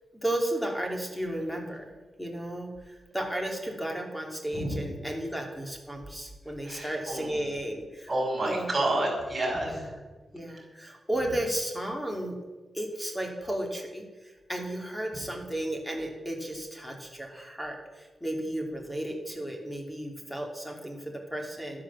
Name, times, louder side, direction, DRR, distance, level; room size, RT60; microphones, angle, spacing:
voice 1, 0.1-8.1 8.4-8.7 9.6-9.8 10.3-12.4 12.7-21.8, right 1 dB, 5° left, 1 dB, 2.7 m, -34 dB
voice 2, 6.6-7.5 8.1-9.8 10.3-10.4 15.1-15.2, right 1 dB, 20° right, -2 dB, 5.5 m, -30 dB
12.5 x 10.0 x 7.2 m, 1.2 s
wide cardioid pair, 140°, 0 cm